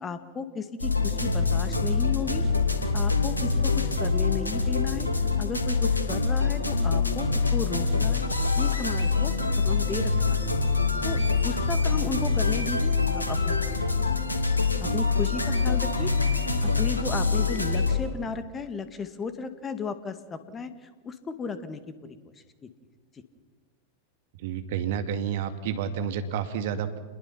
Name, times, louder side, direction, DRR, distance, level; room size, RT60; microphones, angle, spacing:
voice 1, 0.0-2.4 2.9-5.1 5.4-8.3 8.6-10.4 11.0-13.8 14.8-16.1 16.6-20.7 21.0-22.3 22.6-22.7, left 5 dB, 20° left, 10 dB, 2.1 m, -34 dB
sound 1, 0.8-18.0, left 4 dB, 80° left, 2.9 m, -25 dB
voice 2, 24.4-27.0, right 8 dB, 50° right, 9 dB, 2.0 m, -30 dB
28.5 x 21.5 x 5.8 m, 1.4 s
figure-of-eight pair, 90°, 0 cm